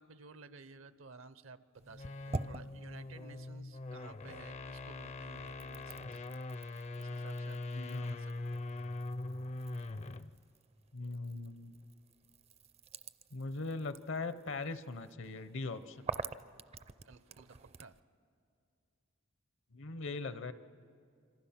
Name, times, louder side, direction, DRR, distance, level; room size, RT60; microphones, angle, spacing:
voice 1, 0.0-6.2 7.0-8.7 17.0-18.0, right 4 dB, 75° right, 14 dB, 0.8 m, -55 dB
sound 1, 1.7-4.4 4.7-18.0, right 3 dB, 30° right, 0.5 m, -48 dB
sound 2, 1.9-10.4, left 2 dB, 35° left, 0.5 m, -42 dB
voice 2, 7.7-8.3 10.9-11.9 13.3-16.1 19.7-20.5, left 3 dB, 65° left, 13 dB, 0.8 m, -40 dB
26.5 x 26.0 x 5.8 m, 2.4 s
head